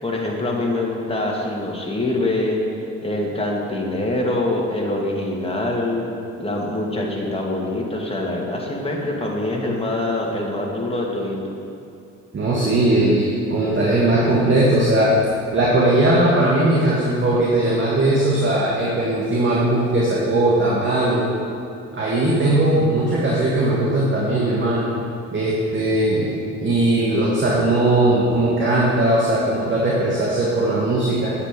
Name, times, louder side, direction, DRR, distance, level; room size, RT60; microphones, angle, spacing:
voice 1, 0.0-2.6 3.0-6.1 6.4-11.4, left 2 dB, 15° left, -2 dB, 2.3 m, -24 dB
voice 2, 12.3-15.1 15.5-21.3 21.9-24.8 25.3-26.3 26.6-31.3, right 1 dB, 30° right, -6 dB, 2.0 m, -19 dB
8.9 x 8.5 x 5.2 m, 2.5 s
figure-of-eight pair, 45°, 37 cm